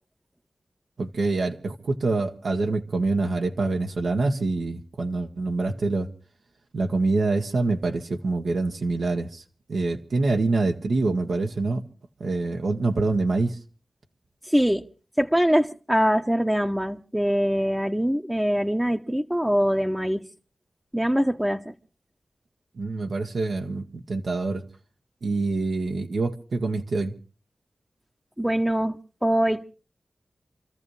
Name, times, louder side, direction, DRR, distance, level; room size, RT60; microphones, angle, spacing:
voice 1, 1.0-6.1 6.7-9.4 9.7-11.8 12.2-13.6 22.8-24.6 25.2-27.1, right 3 dB, 80° right, 1.5 m, -25 dB
voice 2, 14.4-14.9 15.2-20.3 20.9-21.7 28.4-29.7, equal, 10° right, 0.9 m, -23 dB
28.0 x 14.0 x 3.3 m
cardioid pair, 45°, 0 cm